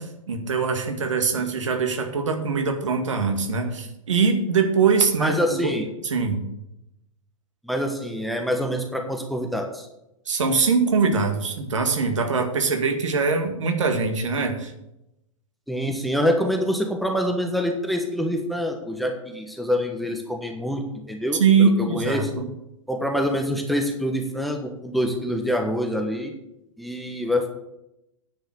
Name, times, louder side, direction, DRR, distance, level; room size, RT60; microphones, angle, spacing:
voice 1, 0.0-5.7 6.0-6.4 10.3-14.7 21.4-22.5, right 5 dB, 65° right, 4 dB, 2.0 m, -22 dB
voice 2, 5.2-5.9 7.6-9.9 15.7-20.8 21.1-22.3 22.9-26.3 26.8-27.5, equal, ahead, 3 dB, 1.3 m, -25 dB
9.7 x 6.4 x 7.8 m, 0.86 s
figure-of-eight pair, 105°, 17 cm